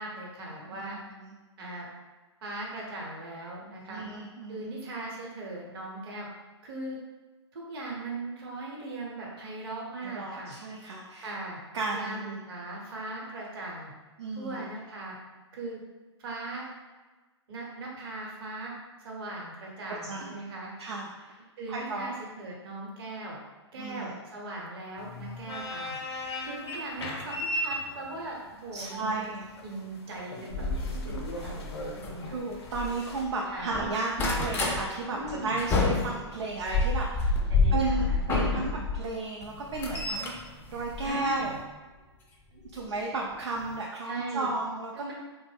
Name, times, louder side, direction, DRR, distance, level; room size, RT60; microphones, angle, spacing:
voice 1, 0.0-1.0 1.6-1.9 2.4-4.1 4.5-6.3 6.6-7.0 7.5-10.6 11.2-11.6 11.9-13.9 14.4-15.2 15.5-15.8 16.2-16.7 17.5-18.7 19.0-20.7 21.6-23.4 23.7-26.0 26.4-29.2 29.6-32.3 33.5-33.7 35.1-35.6 37.5-38.6 41.0-41.6 44.1-44.5 44.9-45.1, right 2 dB, 55° right, -3 dB, 0.9 m, -39 dB
voice 2, 0.7-1.4 3.9-4.7 10.0-11.3 11.7-12.4 14.2-14.7 20.0-20.3 20.8-21.4 21.7-22.1 23.8-24.2 28.7-29.5 32.2-37.4 37.7-40.3 40.7-41.6 42.7-45.1, right 3 dB, 70° right, -2 dB, 0.4 m, -33 dB
sound 1, 25.0-33.2, left 1 dB, 60° left, 0.6 m, -38 dB
sound 2, 30.5-33.3 33.6-34.8 35.2-39.0 39.4-41.6 42.7-42.9 43.3-43.4 43.6-43.7, left 3 dB, 15° left, 0.3 m, -29 dB
2.6 x 2.1 x 3.3 m, 1.3 s
hypercardioid pair, 120°, 15 cm